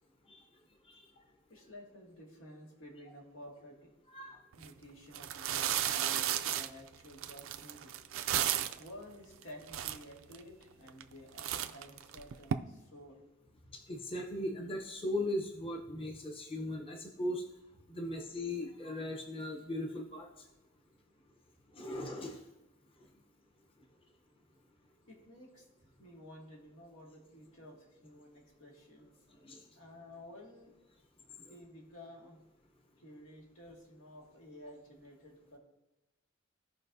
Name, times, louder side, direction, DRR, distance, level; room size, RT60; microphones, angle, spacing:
voice 1, 1.5-3.9 4.6-8.0 8.8-13.2 25.1-25.7 26.0-29.1 29.7-30.7 31.4-32.4 33.0-35.6, left 1 dB, 90° left, -1 dB, 2.0 m, -52 dB
sound 1, 4.5-4.7 5.1-8.9 9.4-9.5 9.7-10.4 10.9-11.1 11.4-12.5, right 10 dB, 80° right, 0.4 m, -34 dB
voice 2, 13.9-17.4 17.9-20.3 21.8-22.4 29.4-29.6, left 1 dB, 30° left, 1 dB, 0.8 m, -38 dB
16.0 x 5.4 x 2.7 m, 1.0 s
head